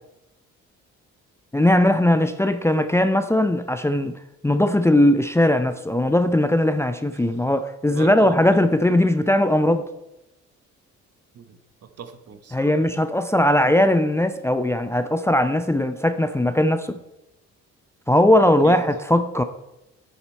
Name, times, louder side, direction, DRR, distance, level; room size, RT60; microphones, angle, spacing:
voice 1, 1.5-4.2 4.4-9.9 12.5-17.0 18.1-19.4, left 1 dB, 10° left, 9 dB, 0.5 m, -19 dB
voice 2, 7.9-8.8 11.3-12.7 18.6-18.8, right 6 dB, 55° right, 9 dB, 1.0 m, -39 dB
10.5 x 7.1 x 4.4 m, 0.92 s
cardioid pair, 90°, 30 cm